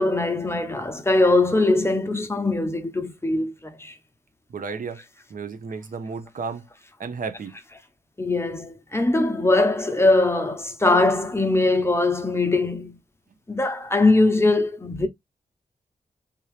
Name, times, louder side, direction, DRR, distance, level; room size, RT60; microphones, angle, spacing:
voice 1, 0.0-3.9 8.2-13.0 13.5-15.1, left 2 dB, 15° left, 0.9 m, -21 dB
voice 2, 4.5-5.0 5.3-6.7 7.0-7.5, right 5 dB, 70° right, 0.8 m, -33 dB
3.6 x 2.8 x 3.2 m
wide cardioid pair, 105°, 15 cm